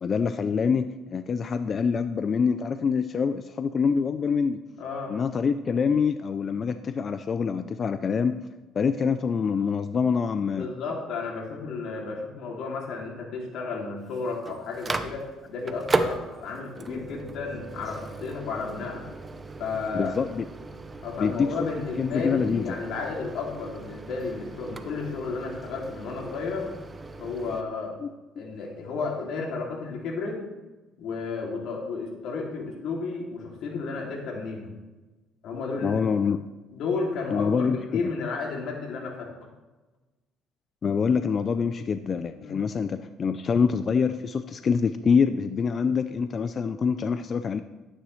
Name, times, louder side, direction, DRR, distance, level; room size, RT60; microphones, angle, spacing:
voice 1, 0.0-4.6 5.1-8.4 8.8-10.7 16.9-17.0 19.9-20.4 21.2-21.5 22.0-22.8 28.0-28.5 35.8-36.4 37.3-38.1 40.8-47.6, left 6 dB, 35° left, 10 dB, 0.4 m, -25 dB
voice 2, 4.8-5.2 10.5-19.1 19.6-20.1 21.0-26.7 27.2-28.0 28.4-30.4 31.0-34.7 35.4-36.0 36.7-39.3 42.4-42.6, left 4 dB, 65° left, -1 dB, 2.6 m, -33 dB
Microwave oven, 14.0-27.6, right 3 dB, 20° right, 0.7 m, -36 dB
12.0 x 9.6 x 3.2 m, 1.1 s
cardioid pair, 125°, 0 cm